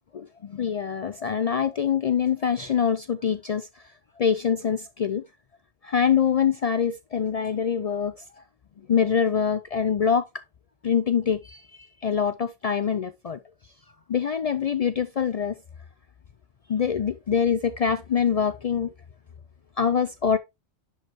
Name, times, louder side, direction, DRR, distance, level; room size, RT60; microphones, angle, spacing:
voice 1, 0.1-3.8 4.2-5.2 5.8-8.4 8.9-10.2 10.8-13.4 14.1-15.6 16.7-18.9 19.8-20.4, left 7 dB, 75° left, 0.3 m, -24 dB
10.5 x 4.7 x 2.9 m
omnidirectional pair, 1.2 m